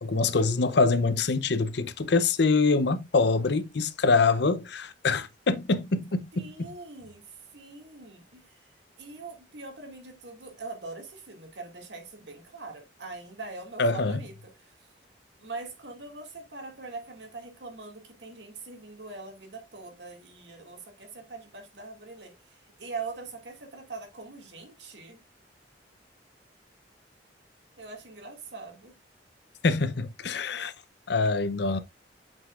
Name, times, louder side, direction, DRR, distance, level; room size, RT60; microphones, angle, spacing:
voice 1, 0.0-6.7 13.8-14.2 29.6-30.7 31.1-31.8, left 4 dB, 70° left, 0.7 m, -25 dB
voice 2, 6.3-8.6 9.0-14.7 15.4-25.2 27.8-29.0, right 3 dB, 70° right, 2.2 m, -42 dB
8.1 x 5.4 x 2.5 m
head